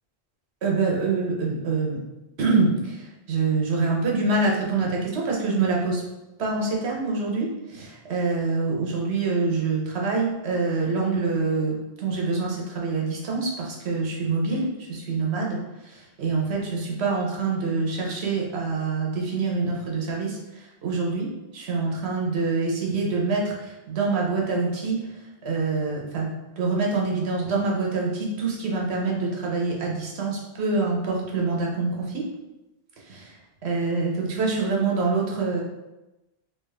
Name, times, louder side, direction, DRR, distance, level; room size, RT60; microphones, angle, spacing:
voice 1, 0.6-2.0 2.4-6.0 6.4-21.3 21.5-25.0 25.4-32.2 33.1-33.3 33.6-35.6, right 3 dB, 75° right, -2 dB, 1.1 m, -25 dB
3.4 x 2.9 x 3.3 m, 1.0 s
omnidirectional pair, 1.1 m